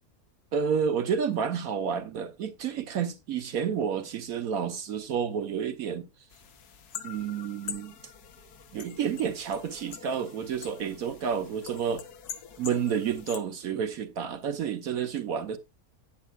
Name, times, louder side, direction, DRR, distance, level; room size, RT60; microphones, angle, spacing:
voice 1, 0.5-6.1 7.0-7.9 8.7-12.0 12.6-15.6, right 7 dB, 70° right, 1.2 m, -30 dB
sound 1, 6.3-13.4, left 8 dB, 80° left, 1.5 m, -44 dB
13.0 x 9.1 x 2.3 m
omnidirectional pair, 1.7 m